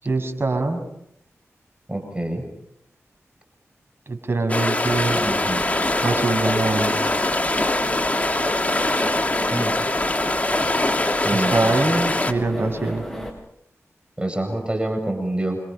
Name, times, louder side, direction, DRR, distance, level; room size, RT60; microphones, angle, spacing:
voice 1, 0.0-0.8 4.1-5.2 6.0-6.9 11.3-13.0, right 3 dB, 50° right, 5 dB, 6.8 m, -23 dB
voice 2, 1.9-2.4 5.1-5.7 9.5-9.7 11.2-11.5 14.2-15.6, right 1 dB, 20° right, 4 dB, 7.5 m, -26 dB
sound 1, 4.5-12.3, left 2 dB, 30° left, 2.8 m, -23 dB
sound 2, 4.8-13.3, equal, 5° left, 7.9 m, -33 dB
29.5 x 26.5 x 5.8 m, 0.77 s
cardioid pair, 50°, 5 cm